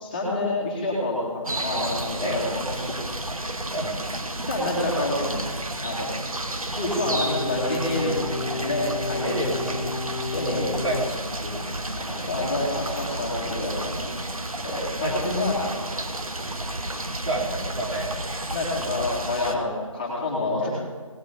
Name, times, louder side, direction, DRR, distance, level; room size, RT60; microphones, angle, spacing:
voice 1, 0.0-2.9 4.5-5.4 5.8-6.1 6.8-9.5 10.3-10.7 12.0-14.0 14.6-15.7 18.5-20.7, left 2 dB, 15° left, -5 dB, 2.3 m, -28 dB
sound 1, 1.4-19.5, right 1 dB, 90° right, 1.5 m, -32 dB
voice 2, 2.2-2.5 3.7-4.0 9.2-9.8 10.6-11.7 15.0-15.2 16.9-18.4, right 1 dB, 70° right, -2 dB, 3.9 m, -30 dB
sound 2, 7.1-11.1, left 3 dB, 75° left, 0.9 m, -32 dB
18.5 x 8.6 x 5.2 m, 1.5 s
figure-of-eight pair, 170°, 18 cm